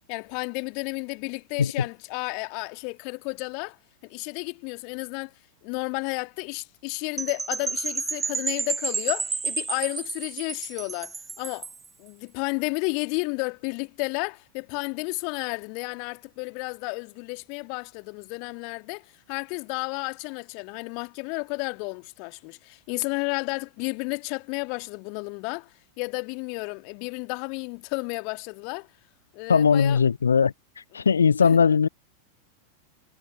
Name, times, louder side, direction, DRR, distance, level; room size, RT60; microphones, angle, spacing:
voice 1, 0.1-3.8 4.0-5.3 5.6-11.7 12.0-25.7 26.0-28.9 29.3-30.0 31.0-31.1 31.4-31.5, left 37 dB, 45° left, 2.0 m, -32 dB
Percussion / Wind chime, 7.2-11.9, right 4 dB, 15° right, 1.0 m, -31 dB
voice 2, 29.5-30.5 30.9-31.9, left 6 dB, 70° left, 0.4 m, -19 dB
figure-of-eight pair, 90°, 0 cm